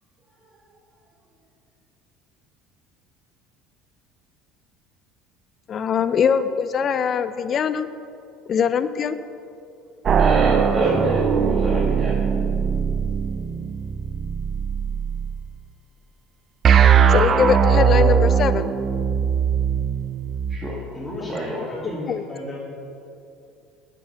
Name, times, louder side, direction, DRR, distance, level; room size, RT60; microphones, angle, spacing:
voice 1, 5.7-7.9 8.5-9.2 17.1-18.7 22.1-22.2, left 7 dB, 40° left, 12 dB, 0.4 m, -22 dB
sound 1, 10.1-15.4 16.6-20.6, right 7 dB, 40° right, 0.5 m, -20 dB
voice 2, 10.2-12.2 20.5-20.8 21.3-21.6, right 1 dB, 25° right, -4 dB, 1.5 m, -27 dB
voice 3, 20.9-22.6, left 1 dB, 10° left, -5 dB, 2.3 m, -33 dB
9.0 x 5.9 x 6.8 m, 2.6 s
supercardioid pair, 105°, 0 cm